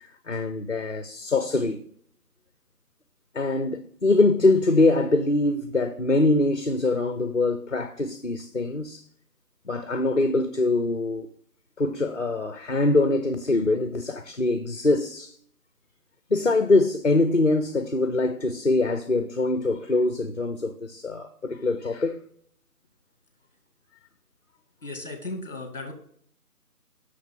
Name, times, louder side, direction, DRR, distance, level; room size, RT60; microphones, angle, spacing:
voice 1, 0.0-1.8 3.3-9.0 9.7-11.3 11.8-15.3 16.3-22.2, left 2 dB, 50° left, 0.7 m, -23 dB
voice 2, 24.8-25.9, left 2 dB, 35° left, 2.0 m, -35 dB
7.7 x 6.6 x 3.7 m
figure-of-eight pair, 175°, 47 cm